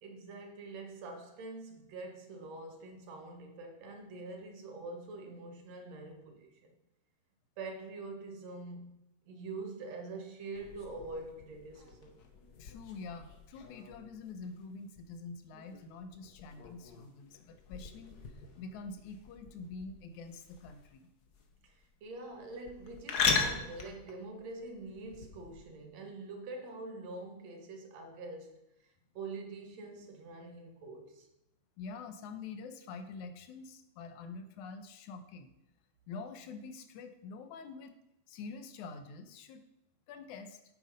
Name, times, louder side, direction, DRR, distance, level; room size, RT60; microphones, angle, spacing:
voice 1, 0.0-6.7 7.6-8.9 9.3-12.2 21.6-31.3, right 3 dB, 65° right, 2.6 m, -45 dB
sound 1, 10.5-25.6, left 5 dB, 60° left, 1.0 m, -40 dB
voice 2, 12.6-21.1 31.8-35.5 36.1-37.9 38.3-39.6 40.1-40.6, left 4 dB, 85° left, 2.4 m, -46 dB
9.3 x 8.0 x 5.3 m
omnidirectional pair, 3.4 m